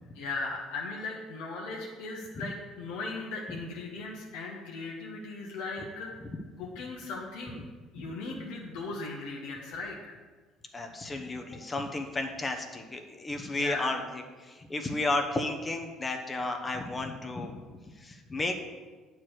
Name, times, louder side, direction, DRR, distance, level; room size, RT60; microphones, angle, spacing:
voice 1, 0.1-6.1 6.6-7.6 7.9-10.2 13.4-13.9, left 3 dB, 70° left, -2 dB, 1.2 m, -38 dB
voice 2, 10.7-18.6, left 2 dB, 25° left, 4 dB, 1.0 m, -33 dB
8.7 x 4.7 x 6.4 m, 1.4 s
hypercardioid pair, 60°, 0 cm